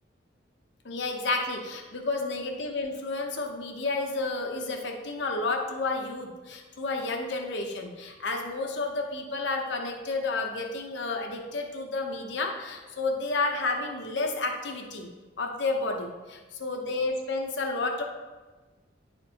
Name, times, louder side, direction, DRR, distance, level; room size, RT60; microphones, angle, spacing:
voice 1, 0.8-18.0, left 3 dB, 65° left, 3 dB, 0.9 m, -31 dB
10.0 x 4.3 x 2.9 m, 1.2 s
head